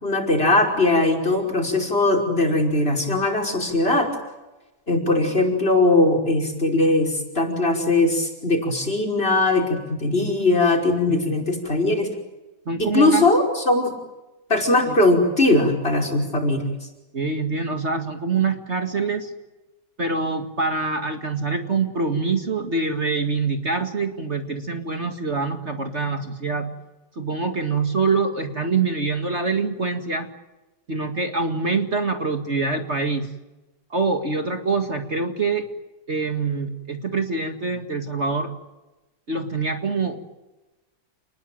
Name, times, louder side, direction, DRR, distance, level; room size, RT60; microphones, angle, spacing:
voice 1, 0.0-4.1 4.9-12.1 12.8-13.9 14.5-16.7, left 2 dB, 35° left, 5 dB, 5.5 m, -20 dB
voice 2, 11.1-11.4 12.7-13.3 14.9-15.0 17.1-19.3 20.0-26.8 27.2-30.3 30.9-33.3 33.9-35.7 36.1-38.5 39.3-40.3, right 4 dB, 40° right, 5 dB, 2.3 m, -25 dB
29.5 x 21.0 x 9.2 m, 1.1 s
omnidirectional pair, 1.8 m